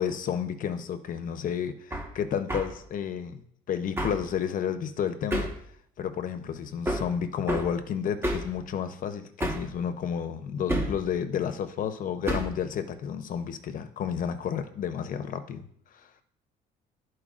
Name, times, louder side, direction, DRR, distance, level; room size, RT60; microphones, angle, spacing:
voice 1, 0.0-5.5 6.0-15.7, left 8 dB, 55° left, 0.7 m, -31 dB
Hammer, 1.9-2.1 2.5-2.7 4.0-4.2 5.3-5.6 6.9-7.1 7.5-7.7 8.2-8.5 9.4-9.7 10.7-11.0 12.3-12.6, right 1 dB, 15° right, 1.3 m, -29 dB
12.5 x 4.5 x 2.5 m
cardioid pair, 110°, 17 cm